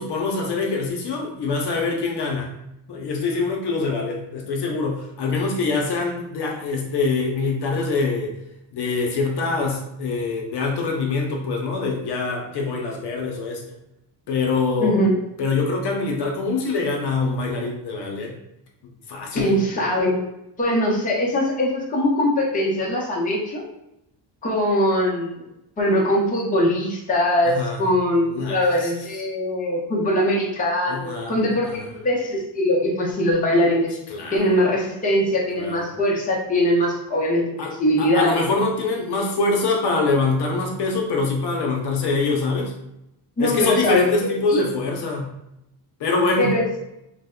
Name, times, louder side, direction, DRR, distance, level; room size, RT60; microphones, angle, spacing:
voice 1, 0.0-2.5 2.9-8.3 8.7-13.6 14.3-15.0 15.4-18.3 19.1-19.5 27.5-27.8 28.3-28.9 30.9-31.3 34.1-34.5 35.5-35.8 37.6-42.7 43.4-45.3 46.0-46.6, left 3 dB, 65° left, 0 dB, 0.7 m, -24 dB
voice 2, 14.8-15.2 19.3-20.2 20.6-23.7 24.4-25.4 25.8-34.0 34.3-38.4 43.4-44.1 44.5-44.6 46.4-46.8, left 1 dB, 20° left, -4 dB, 0.7 m, -21 dB
3.3 x 2.1 x 3.7 m, 0.86 s
cardioid pair, 155°, 45 cm